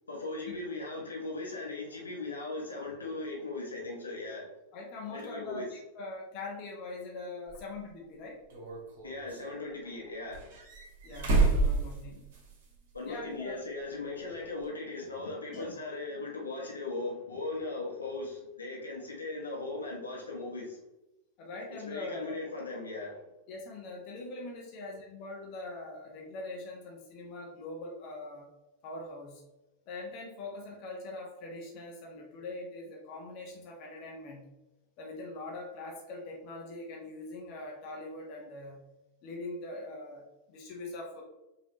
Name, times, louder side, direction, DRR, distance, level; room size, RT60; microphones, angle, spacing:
voice 1, 0.1-4.5 5.1-5.7 9.0-10.6 12.9-20.8 21.8-23.2, left 3 dB, 75° left, -2 dB, 1.2 m, -38 dB
voice 2, 4.7-8.4 11.0-12.2 13.0-13.6 15.5-15.8 21.4-22.4 23.5-28.5 28.8-29.4 29.9-34.5 35.0-38.8 39.2-41.2, left 2 dB, 40° left, -1 dB, 1.1 m, -42 dB
sound 1, 7.5-7.6 8.5-9.4 10.3-12.6 12.9-13.0 14.6-14.7, right 3 dB, 50° right, 1.6 m, -29 dB
5.1 x 3.1 x 3.1 m, 0.98 s
figure-of-eight pair, 90°, 0 cm